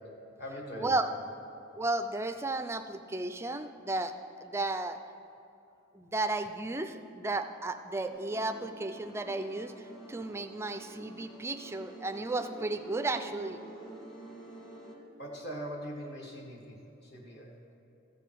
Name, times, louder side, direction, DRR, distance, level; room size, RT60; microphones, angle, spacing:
voice 1, 0.4-1.0 15.2-17.6, equal, 50° left, -2 dB, 1.5 m, -41 dB
voice 2, 1.8-4.1 4.4-5.0 5.9-9.7 10.1-13.6, right 2 dB, 10° right, 8 dB, 0.3 m, -33 dB
sound 1, 8.1-14.9, right 2 dB, 20° left, 1.5 m, -48 dB
14.5 x 6.9 x 4.6 m, 2.8 s
head